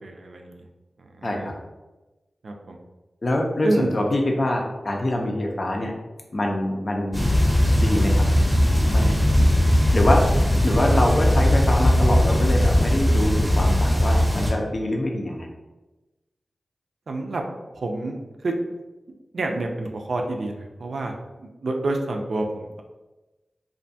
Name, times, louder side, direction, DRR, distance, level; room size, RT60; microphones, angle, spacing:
voice 1, 0.0-0.6 1.2-1.5 2.4-2.8 3.6-3.9 17.1-17.4 17.7-18.2 18.4-18.5 19.3-22.8, right 2 dB, 75° right, 3 dB, 0.3 m, -28 dB
voice 2, 1.2-1.5 3.2-5.9 6.3-7.3 7.8-8.2 8.9-9.1 9.9-15.5, left 1 dB, 50° left, 1 dB, 0.5 m, -24 dB
sound 1, 7.1-14.5, equal, ahead, 0.7 m, -19 dB
2.5 x 2.2 x 2.6 m, 1.1 s
wide cardioid pair, 65°, 0 cm